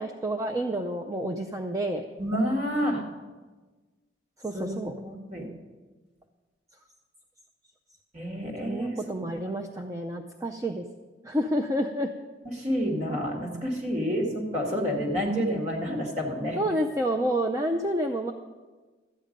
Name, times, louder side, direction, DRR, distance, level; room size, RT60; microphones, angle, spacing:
voice 1, 0.0-2.1 4.4-4.9 8.6-10.8 11.2-12.1 16.6-18.3, right 1 dB, 20° right, 4 dB, 0.4 m, -29 dB
voice 2, 2.2-3.0 4.5-5.5 8.1-9.0 12.5-16.6, equal, 40° right, 0 dB, 1.8 m, -29 dB
13.0 x 8.7 x 5.2 m, 1.3 s
head